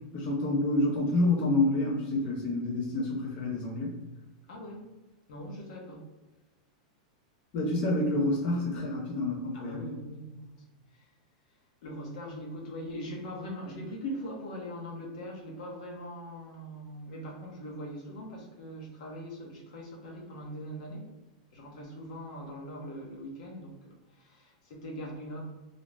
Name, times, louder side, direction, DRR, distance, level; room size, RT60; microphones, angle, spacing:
voice 1, 0.1-3.9 7.5-9.9, left 2 dB, 35° left, -4 dB, 0.5 m, -28 dB
voice 2, 4.5-4.9 5.3-6.0 9.5-10.6 10.9-11.1 11.8-21.1 21.5-25.4, equal, 60° left, -1 dB, 0.8 m, -41 dB
2.5 x 2.0 x 3.2 m, 1.1 s
supercardioid pair, 150°, 4 cm